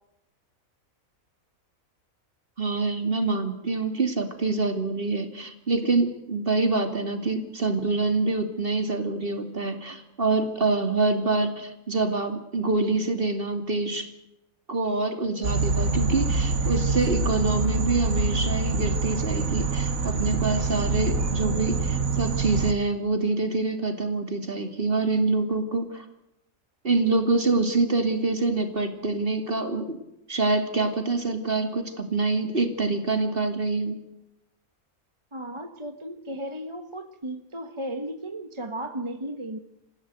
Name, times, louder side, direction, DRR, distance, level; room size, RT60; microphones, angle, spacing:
voice 1, 2.6-14.1 14.7-26.0 26.8-30.0 30.3-34.0, right 3 dB, 40° right, 7 dB, 2.8 m, -26 dB
sound 1, 15.4-22.7, right 3 dB, 75° right, 2.1 m, -25 dB
voice 2, 35.3-39.6, right 1 dB, 20° right, 8 dB, 1.3 m, -35 dB
28.0 x 15.5 x 8.0 m, 0.88 s
omnidirectional pair, 1.4 m